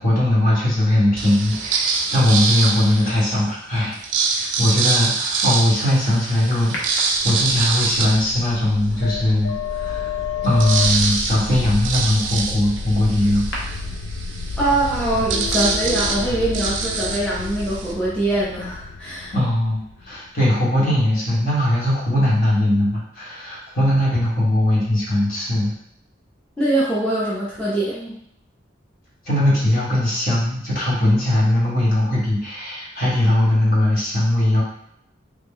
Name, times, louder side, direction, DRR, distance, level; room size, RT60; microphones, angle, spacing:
voice 1, 0.0-3.9 4.3-10.1 10.4-13.4 19.3-19.8 20.1-25.7 29.2-34.6, left 1 dB, 45° left, -6 dB, 1.2 m, -20 dB
sound 1, 1.2-3.3 3.9-9.1 9.6-9.7 9.9-17.9, right 4 dB, 75° right, 0.4 m, -25 dB
sound 2, 6.7-7.8 9.6-9.9 10.4-16.6 16.9-17.0, equal, 70° left, 0.7 m, -35 dB
sound 3, 6.9-20.7, left 5 dB, 85° left, 0.3 m, -31 dB
voice 2, 14.6-19.3 26.6-28.2, right 1 dB, 5° left, -10 dB, 0.7 m, -23 dB
3.3 x 2.2 x 3.6 m, 0.72 s
head